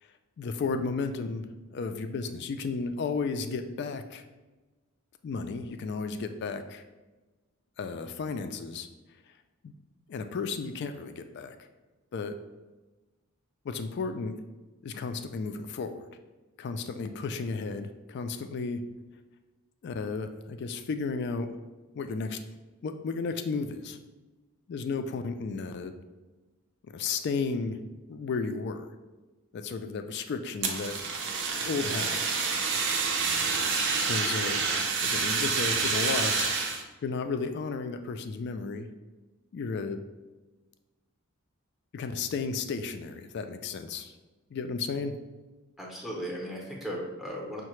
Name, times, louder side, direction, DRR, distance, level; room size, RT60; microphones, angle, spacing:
voice 1, 0.4-1.5 1.7-4.2 5.2-6.8 7.8-8.9 9.6-9.7 10.1-11.5 12.1-12.3 13.6-14.4 14.8-16.1 16.6-18.8 19.8-21.5 21.9-22.4 22.8-24.0 24.7-25.9 26.9-27.8 28.1-28.9 29.5-30.9 31.6-32.2 34.0-36.6 37.0-38.9 39.5-40.0 41.9-44.1 44.5-45.2, left 4 dB, 50° left, 8 dB, 0.3 m, -33 dB
Fire, 30.6-36.8, right 5 dB, 55° right, 0.5 m, -28 dB
voice 2, 45.8-47.6, equal, ahead, -3 dB, 0.6 m, -37 dB
5.5 x 2.1 x 3.0 m, 1.2 s
head